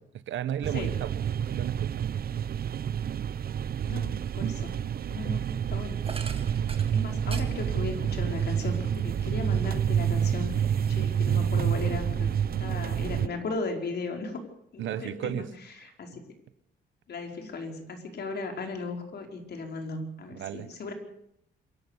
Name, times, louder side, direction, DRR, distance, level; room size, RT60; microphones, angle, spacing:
voice 1, 0.3-2.0 14.8-15.5 20.3-20.7, right 10 dB, 75° right, 14 dB, 1.3 m, -34 dB
sound 1, 0.6-13.3, right 8 dB, 50° right, 0.8 m, -28 dB
voice 2, 3.8-4.8 5.1-6.0 6.6-12.3 12.6-14.4 14.7-16.2 17.1-20.9, left 3 dB, 55° left, 4 dB, 4.9 m, -36 dB
sound 2, 6.0-10.0 10.4-11.6, right 4 dB, 30° right, 2.3 m, -46 dB
26.5 x 12.0 x 8.3 m, 0.73 s
cardioid pair, 90°, 20 cm